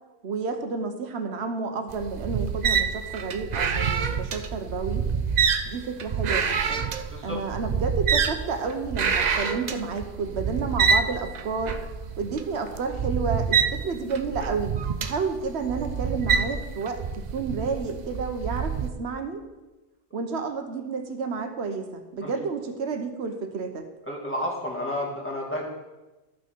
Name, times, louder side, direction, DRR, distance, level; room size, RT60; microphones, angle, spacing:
voice 1, 0.2-5.1 5.7-6.9 7.2-11.8 12.2-19.4 20.1-23.9, right 4 dB, 75° right, 6 dB, 1.2 m, -31 dB
sound 1, 1.9-18.9, right 6 dB, 50° right, 0.6 m, -27 dB
voice 2, 7.1-7.4 22.2-22.3 24.0-25.7, left 1 dB, 10° left, -3 dB, 1.8 m, -31 dB
13.0 x 5.8 x 4.5 m, 1.1 s
omnidirectional pair, 1.1 m